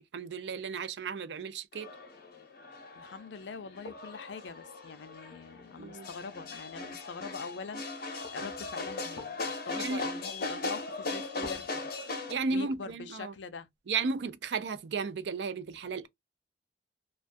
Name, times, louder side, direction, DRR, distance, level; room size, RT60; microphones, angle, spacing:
voice 1, 0.1-1.9 5.8-6.1 9.8-10.0 12.3-13.3 13.9-16.1, right 4 dB, 75° right, 0.4 m, -34 dB
sound 1, 1.7-12.3, left 3 dB, 60° left, 0.8 m, -39 dB
voice 2, 3.0-13.7 15.8-15.9, left 5 dB, 90° left, 0.5 m, -44 dB
2.3 x 2.3 x 2.5 m
head